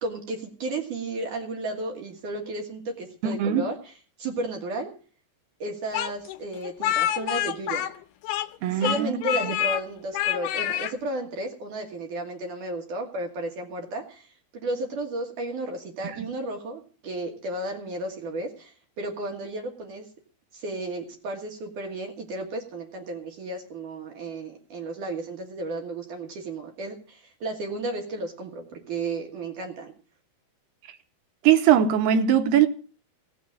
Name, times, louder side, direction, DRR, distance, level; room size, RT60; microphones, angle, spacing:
voice 1, 0.0-3.9 4.2-4.9 5.6-7.8 8.7-20.1 20.5-29.9, right 2 dB, 55° right, 2.8 m, -33 dB
voice 2, 3.2-3.6 8.6-9.5 31.4-32.7, right 9 dB, 80° right, 2.8 m, -21 dB
Speech, 5.9-8.6 8.8-9.8 10.1-10.9, left 12 dB, 75° left, 2.6 m, -27 dB
17.0 x 6.4 x 8.5 m
omnidirectional pair, 4.8 m